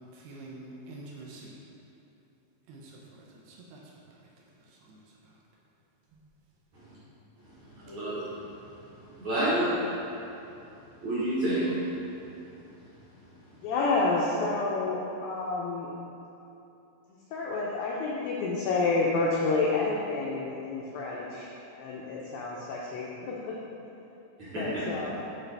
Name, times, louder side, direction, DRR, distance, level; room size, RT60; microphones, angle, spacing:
voice 1, 0.0-1.6 2.7-3.8 4.7-5.0, right 2 dB, 80° right, -3 dB, 2.4 m, -47 dB
voice 2, 7.7-8.3 9.2-9.7 11.0-11.7 24.4-24.6, right 1 dB, 65° right, -11 dB, 1.9 m, -29 dB
voice 3, 13.5-15.9 17.1-23.6 24.5-25.2, left 3 dB, 90° left, -4 dB, 2.0 m, -29 dB
9.4 x 4.0 x 3.3 m, 2.8 s
omnidirectional pair, 4.9 m